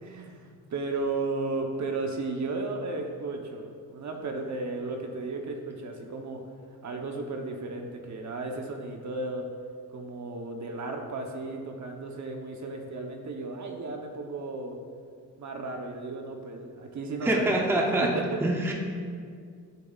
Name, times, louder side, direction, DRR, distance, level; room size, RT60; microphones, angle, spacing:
voice 1, 0.0-6.4 6.8-9.5 9.9-14.8 15.4-17.6 18.0-18.2 18.6-18.7, right 3 dB, 55° right, 3 dB, 0.9 m, -34 dB
voice 2, 17.2-18.1 18.4-18.7, right 1 dB, 5° right, 0 dB, 0.6 m, -25 dB
11.5 x 6.9 x 2.4 m, 2.2 s
wide cardioid pair, 160°, 35 cm